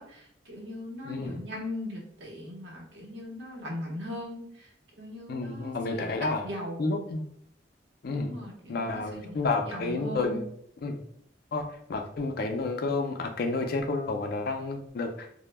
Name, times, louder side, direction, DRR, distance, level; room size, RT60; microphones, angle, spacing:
voice 1, 0.0-4.7 5.0-6.2 6.4-7.0 8.1-9.4 9.6-10.4, left 1 dB, 75° right, -2 dB, 0.8 m, -39 dB
voice 2, 1.0-1.4 5.3-6.5 6.8-7.2 8.0-8.4 8.7-10.4 10.8-11.0 11.5-15.3, left 3 dB, 55° left, 4 dB, 0.4 m, -30 dB
2.1 x 2.0 x 3.2 m, 0.67 s
head